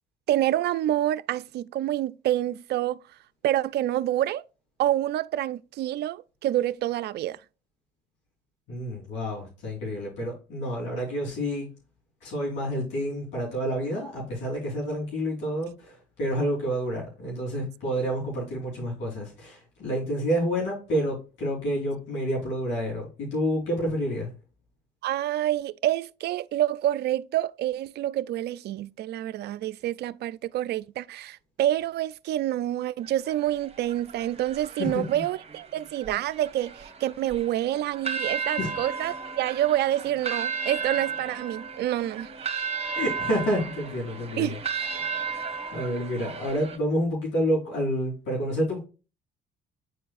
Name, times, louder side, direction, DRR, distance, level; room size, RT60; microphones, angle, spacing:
voice 1, 0.3-3.0 3.4-4.4 4.8-7.4 25.0-42.3 44.4-44.6, right 13 dB, 60° right, 0.4 m, -27 dB
voice 2, 8.7-11.7 12.2-24.3 34.8-35.0 38.6-38.7 42.9-44.6 45.7-48.8, equal, 70° left, 3.7 m, -29 dB
sound 1, 33.0-46.8, right 6 dB, 30° right, 1.6 m, -34 dB
9.2 x 4.5 x 2.5 m
hypercardioid pair, 60°, 19 cm